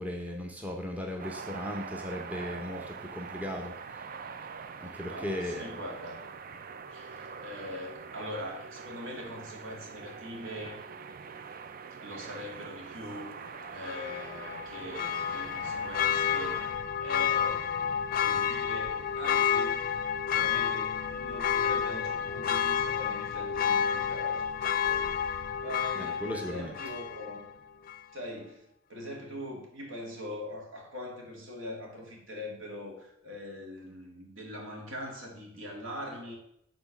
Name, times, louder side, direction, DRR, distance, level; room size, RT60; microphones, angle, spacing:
voice 1, 0.0-4.1 4.8-5.8 26.0-26.8, left 1 dB, 5° right, 1 dB, 0.7 m, -37 dB
sound 1, 1.2-16.8, right 5 dB, 45° right, 0.4 m, -44 dB
voice 2, 4.8-6.2 6.9-10.8 12.0-13.3 13.7-16.7 17.0-17.9 18.2-19.8 20.3-27.5 28.1-36.4, left 1 dB, 75° right, 0 dB, 2.2 m, -42 dB
Church bell, 13.8-27.5 27.9-28.0, left 8 dB, 45° left, 0.4 m, -30 dB
7.8 x 3.9 x 5.9 m, 0.75 s
head